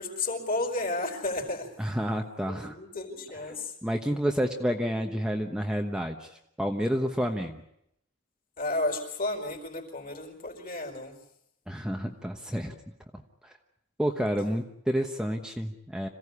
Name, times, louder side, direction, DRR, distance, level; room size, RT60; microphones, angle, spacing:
voice 1, 0.0-1.7 2.5-3.7 8.6-11.2, left 2 dB, 40° left, 4 dB, 4.9 m, -32 dB
voice 2, 1.8-2.8 3.8-7.6 11.7-12.7 13.4-13.5 14.0-16.1, equal, 5° right, 2 dB, 1.2 m, -29 dB
27.0 x 16.0 x 9.8 m, 0.77 s
head